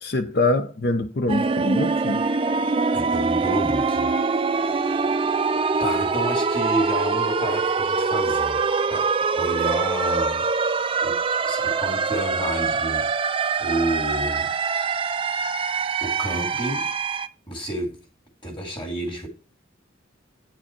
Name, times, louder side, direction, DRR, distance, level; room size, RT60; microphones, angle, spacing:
voice 1, 0.0-2.2, left 2 dB, 55° left, 0.7 m, -24 dB
sound 1, 1.3-17.3, right 4 dB, 25° right, 0.4 m, -24 dB
voice 2, 2.9-4.1 4.6-5.0 5.8-9.1 9.4-10.5 11.0-11.2 11.4-13.1 13.6-14.5 16.0-16.9 17.5-18.0 18.4-19.3, right 1 dB, 25° left, 2.2 m, -30 dB
9.2 x 4.8 x 4.3 m
head